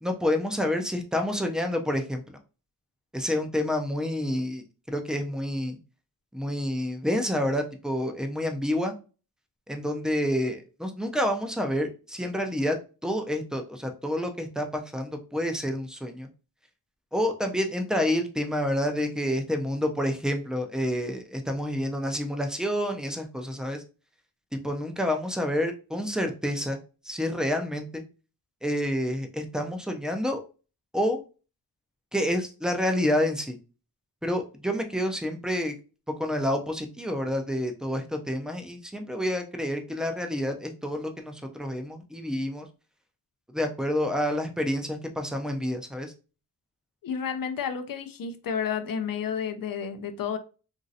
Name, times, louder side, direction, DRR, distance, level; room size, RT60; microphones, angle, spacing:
voice 1, 0.0-2.4 3.1-5.8 6.3-8.9 9.7-12.8 13.0-16.3 17.1-23.8 24.5-26.8 27.0-28.0 28.6-30.4 30.9-31.2 32.1-33.6 34.2-35.8 36.2-42.7 43.5-46.1, left 1 dB, ahead, 5 dB, 0.4 m, -28 dB
voice 2, 47.0-50.4, left 7 dB, 65° left, 9 dB, 0.5 m, -31 dB
3.0 x 2.6 x 2.6 m, 0.34 s
wide cardioid pair, 100°, 37 cm